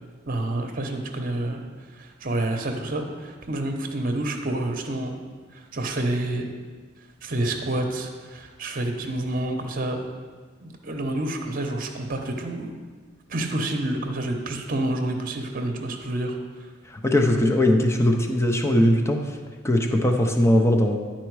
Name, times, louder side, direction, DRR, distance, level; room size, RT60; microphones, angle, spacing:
voice 1, 0.3-1.6 2.0-5.1 5.5-6.5 7.2-10.0 10.6-12.7 13.3-16.4, right 1 dB, 50° right, 4 dB, 0.9 m, -28 dB
voice 2, 16.9-19.2 19.6-21.0, left 1 dB, 15° left, 3 dB, 0.6 m, -20 dB
10.5 x 4.4 x 4.7 m, 1.5 s
head